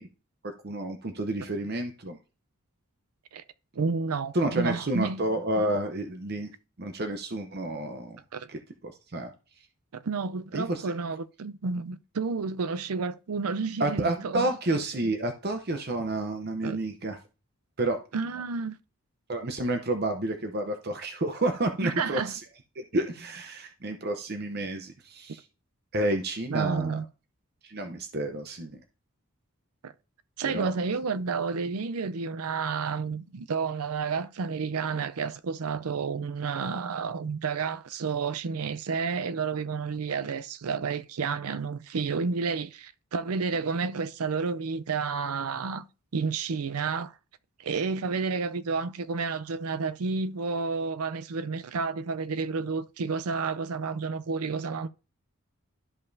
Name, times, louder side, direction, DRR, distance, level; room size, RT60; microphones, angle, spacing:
voice 1, 0.4-2.2 4.3-6.5 6.8-8.2 8.5-9.3 10.5-10.9 13.8-17.2 17.8-18.0 19.3-22.4 22.8-25.4 25.9-27.0 27.6-28.8 30.4-30.7, right 1 dB, 45° right, 0.7 m, -30 dB
voice 2, 3.7-5.2 8.3-8.5 9.9-14.5 16.6-16.8 18.1-18.8 21.8-22.3 26.5-27.0 29.8-29.9 30.4-45.9 46.1-47.1 47.6-54.9, right 5 dB, 85° right, 0.5 m, -30 dB
12.0 x 5.5 x 2.7 m
head